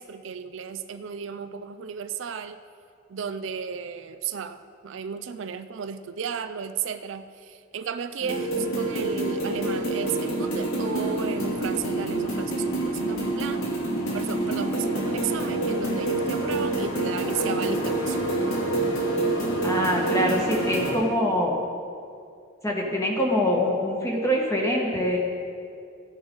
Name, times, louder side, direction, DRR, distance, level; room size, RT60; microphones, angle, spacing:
voice 1, 0.0-2.6 3.1-13.7 14.1-18.4, right 7 dB, 65° right, 10 dB, 0.4 m, -34 dB
sound 1, 8.2-20.9, right 2 dB, 85° left, 2.7 m, -27 dB
voice 2, 19.6-21.5 22.6-25.2, equal, 15° left, -2 dB, 1.5 m, -24 dB
15.0 x 10.0 x 3.9 m, 2.4 s
head